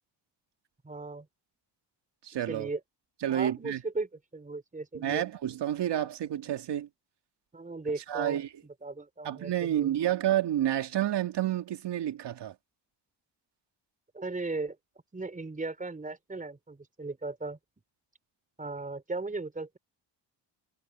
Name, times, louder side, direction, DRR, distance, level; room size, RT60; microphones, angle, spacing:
voice 1, 0.8-1.3 2.5-2.8 3.3-5.2 7.5-8.4 8.8-10.1 14.1-14.8 15.1-17.6 18.6-19.8, right 3 dB, 15° right, 4.6 m, -37 dB
voice 2, 2.2-2.7 3.2-3.8 4.9-6.9 8.1-8.5 9.2-12.5, right 11 dB, 65° right, 2.4 m, -29 dB
cardioid pair, 105°, 45 cm